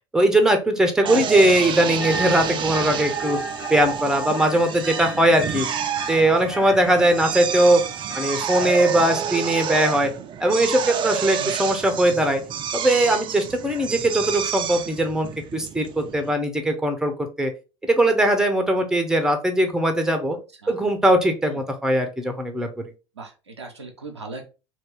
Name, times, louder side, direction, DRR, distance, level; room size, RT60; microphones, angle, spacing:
voice 1, 0.1-3.4 3.7-5.7 6.1-7.8 8.1-10.1 10.4-12.4 12.7-17.5 17.8-20.4 20.7-22.7, right 1 dB, 5° right, 6 dB, 0.8 m, -20 dB
Drill, 1.1-16.3, right 8 dB, 35° right, 0.5 m, -29 dB
sound 1, 2.0-9.1, right 1 dB, 70° left, 1.7 m, -35 dB
voice 2, 23.2-24.4, right 3 dB, 85° right, 3 dB, 0.6 m, -36 dB
2.9 x 2.7 x 3.5 m, 0.31 s
figure-of-eight pair, 65°, 14 cm